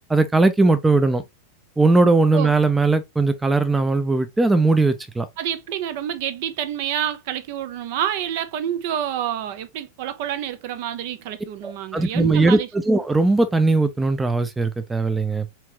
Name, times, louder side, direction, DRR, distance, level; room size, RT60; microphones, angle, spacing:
voice 1, 0.1-1.2 1.8-5.3 11.6-12.6 12.8-15.5, right 3 dB, 10° right, 0.5 m, -19 dB
voice 2, 5.4-12.7, right 10 dB, 50° right, 0.7 m, -28 dB
4.4 x 3.8 x 2.9 m
figure-of-eight pair, 90°, 0 cm